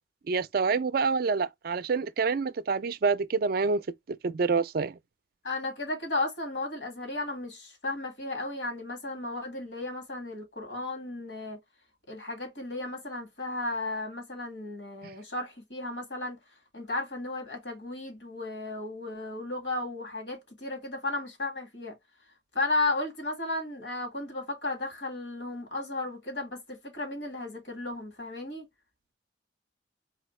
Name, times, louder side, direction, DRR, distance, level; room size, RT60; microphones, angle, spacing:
voice 1, 0.3-5.0, right 4 dB, 55° right, 0.4 m, -27 dB
voice 2, 5.4-11.6 12.1-16.4 16.7-22.0 22.5-28.7, left 2 dB, 65° left, 1.9 m, -34 dB
4.2 x 3.2 x 3.1 m
head